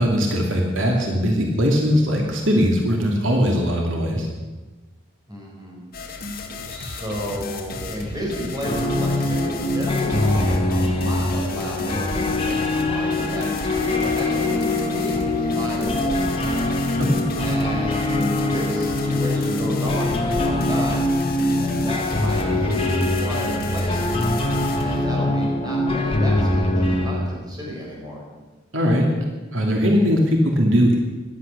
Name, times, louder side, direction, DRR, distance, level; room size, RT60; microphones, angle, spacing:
voice 1, 0.0-4.3 17.0-17.3 28.7-29.1 29.5-31.0, equal, 75° right, 0 dB, 2.6 m, -20 dB
voice 2, 5.3-5.8 6.7-17.0 17.4-21.1 21.6-24.3 24.7-28.2, equal, 20° right, -3 dB, 5.3 m, -32 dB
sound 1, 5.9-25.1, left 3 dB, 45° left, 2.2 m, -34 dB
sound 2, 8.6-27.1, left 1 dB, 25° left, 1.8 m, -23 dB
17.0 x 12.0 x 6.8 m, 1.2 s
head